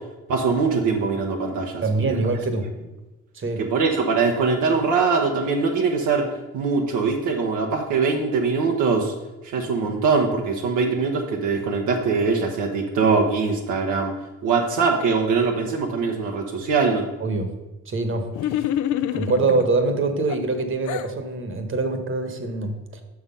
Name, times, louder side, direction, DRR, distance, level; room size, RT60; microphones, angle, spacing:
voice 1, 0.3-2.2 3.6-6.3 6.5-9.1 9.4-14.1 14.4-17.1, right 4 dB, 85° right, 1 dB, 1.0 m, -22 dB
voice 2, 1.8-2.6 3.3-3.6 17.2-17.5 17.9-18.6 19.1-23.0, right 3 dB, 45° right, 7 dB, 1.2 m, -24 dB
sound 1, 18.3-19.7 20.3-21.1, left 11 dB, 75° left, 0.5 m, -26 dB
6.1 x 6.0 x 5.5 m, 1.1 s
cardioid pair, 90°, 30 cm